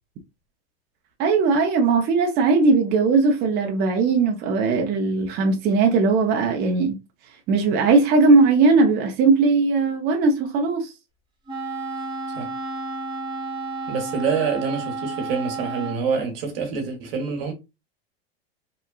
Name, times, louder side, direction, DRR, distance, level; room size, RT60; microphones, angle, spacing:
voice 1, 1.2-7.0 7.5-10.9, right 4 dB, 35° right, 0.5 m, -19 dB
Wind instrument woodwind instrument, 11.5-16.0, right 3 dB, 15° right, 0.9 m, -31 dB
voice 2, 13.9-17.5, right 5 dB, 65° right, 1.0 m, -26 dB
2.9 x 2.2 x 2.3 m
hypercardioid pair, 115°, 31 cm